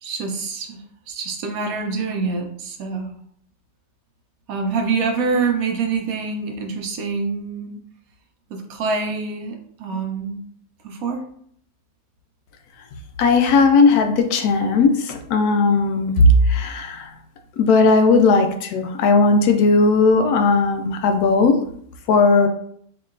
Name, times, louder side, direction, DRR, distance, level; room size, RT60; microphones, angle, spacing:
voice 1, 0.0-3.1 4.5-7.8 8.5-10.4 10.8-11.2, right 4 dB, 70° right, 4 dB, 1.0 m, -25 dB
voice 2, 13.2-17.1 17.6-21.6 22.1-22.5, left 3 dB, 80° left, 5 dB, 1.1 m, -16 dB
4.5 x 2.9 x 2.4 m, 0.64 s
omnidirectional pair, 1.6 m